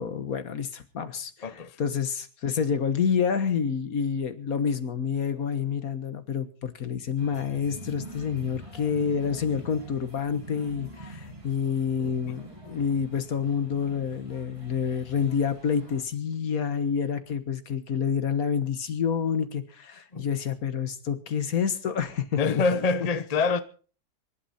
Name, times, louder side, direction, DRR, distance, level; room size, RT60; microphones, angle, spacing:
voice 1, 0.0-22.6, left 7 dB, 65° left, 1.7 m, -28 dB
voice 2, 1.4-1.8 12.0-12.1 20.1-20.3 22.4-23.6, left 4 dB, 35° left, 0.8 m, -26 dB
sound 1, 7.2-16.0, right 1 dB, 20° right, 3.7 m, -45 dB
24.5 x 12.0 x 4.2 m
omnidirectional pair, 1.7 m